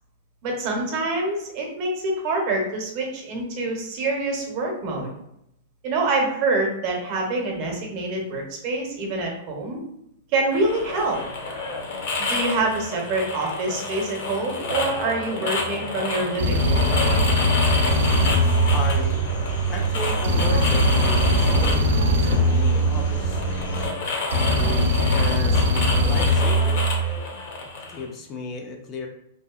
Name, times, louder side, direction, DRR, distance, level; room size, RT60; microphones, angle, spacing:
voice 1, 0.4-5.1 5.8-9.8 10.3-11.2 12.2-16.9, right 2 dB, 45° right, 0 dB, 0.7 m, -26 dB
sound 1, 10.5-28.0, left 3 dB, 60° left, 0.7 m, -30 dB
sound 2, 16.4-19.5 20.2-23.5 24.3-27.2, equal, 90° right, 0.4 m, -21 dB
sound 3, 17.9-23.9, right 4 dB, 75° left, 1.4 m, -27 dB
voice 2, 18.7-19.2 19.7-23.5 24.5-26.8 27.9-29.1, left 3 dB, 30° left, 3 dB, 0.3 m, -34 dB
2.6 x 2.3 x 2.3 m, 0.79 s
hypercardioid pair, 145°, 0 cm